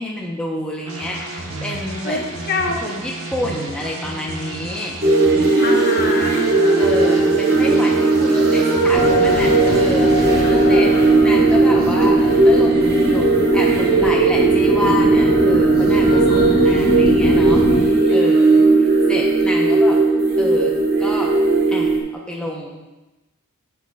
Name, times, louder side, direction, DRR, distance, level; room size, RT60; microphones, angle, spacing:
voice 1, 0.0-2.2 2.8-5.0 6.8-10.1 10.5-10.9 11.2-20.0 20.4-21.3 21.7-22.9, left 1 dB, 5° left, -3 dB, 0.6 m, -29 dB
sound 1, 0.9-10.4, right 2 dB, 70° right, 1.1 m, -32 dB
voice 2, 2.0-2.9 5.6-7.2 10.4-11.1 16.1-16.8 18.0-18.8, left 3 dB, 45° left, 1 dB, 0.9 m, -28 dB
sound 2, 5.0-22.0, right 3 dB, 45° right, 0.9 m, -16 dB
sound 3, 8.9-17.8, left 1 dB, 25° left, 1.4 m, -22 dB
9.2 x 6.1 x 2.2 m, 1.1 s
head